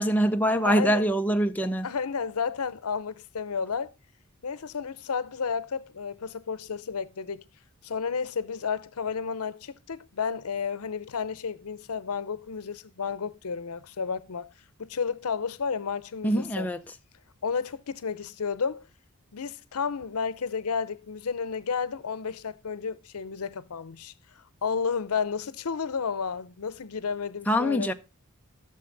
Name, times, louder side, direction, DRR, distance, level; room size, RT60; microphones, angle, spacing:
voice 1, 0.0-1.9 16.2-16.8 27.5-27.9, equal, 5° left, 0.6 m, -24 dB
voice 2, 0.6-1.1 1.8-3.9 4.4-7.4 7.8-14.5 14.8-16.7 17.4-18.9 19.3-24.1 24.6-27.9, left 6 dB, 85° left, 0.7 m, -32 dB
13.0 x 6.8 x 3.9 m
head